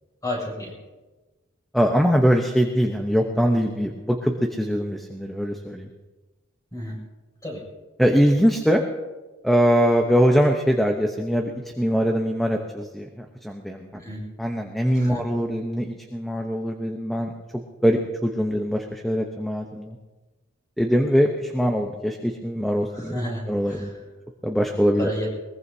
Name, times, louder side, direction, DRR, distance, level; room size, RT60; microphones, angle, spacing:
voice 1, 0.2-0.7 6.7-7.0 7.4-7.6 14.0-14.3 14.9-15.2 22.9-24.0 25.0-25.3, left 1 dB, 20° left, -3 dB, 6.3 m, -31 dB
voice 2, 1.7-5.9 8.0-8.8 9.4-11.5 11.8-14.0 14.4-20.0 20.8-23.1 23.5-23.9 24.4-25.1, equal, ahead, 2 dB, 0.9 m, -22 dB
22.0 x 21.0 x 2.8 m, 1.2 s
head